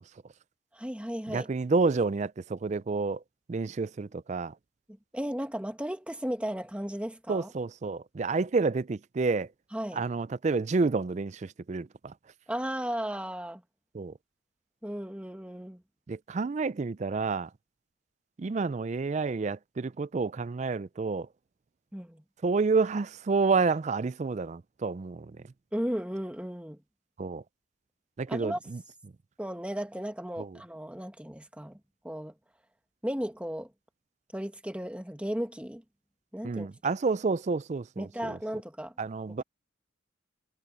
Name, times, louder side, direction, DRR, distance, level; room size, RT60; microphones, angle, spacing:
voice 1, 0.7-1.5 5.1-7.5 9.7-10.0 12.5-13.6 14.8-15.8 21.9-22.2 25.7-26.8 28.3-28.6 29.4-32.3 33.0-33.7 34.3-35.8 36.3-36.7 38.0-38.9 39.3-39.4, equal, 5° right, 1.2 m, -35 dB
voice 2, 1.3-3.2 3.5-4.5 7.3-9.5 9.9-12.1 13.9-14.1 16.1-17.5 18.4-21.3 22.4-25.3 27.2-27.4 28.2-28.8 30.4-30.5 36.4-38.4 39.0-39.4, right 4 dB, 35° right, 0.4 m, -29 dB
head